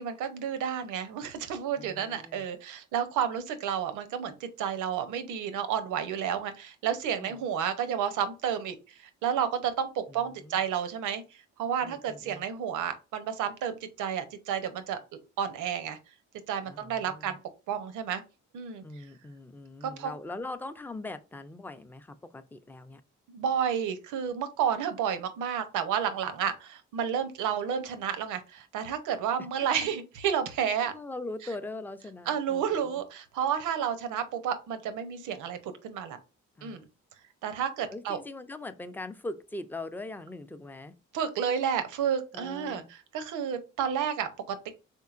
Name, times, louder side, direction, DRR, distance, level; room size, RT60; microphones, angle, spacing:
voice 1, 0.0-8.8 9.2-11.2 11.6-15.0 15.4-16.0 16.5-17.4 17.7-18.2 18.5-18.8 19.8-20.1 23.3-30.9 32.3-35.6 35.8-36.2 36.6-36.8 37.4-38.2 41.1-44.7, right 8 dB, 85° right, 9 dB, 0.7 m, -31 dB
voice 2, 1.8-2.5 7.2-7.4 10.1-10.6 11.8-12.4 16.7-17.4 18.8-23.0 30.8-33.0 36.6-36.8 37.9-40.9 42.3-42.9, left 2 dB, 5° left, 10 dB, 0.4 m, -41 dB
4.4 x 3.6 x 2.4 m, 0.30 s
cardioid pair, 90°, 30 cm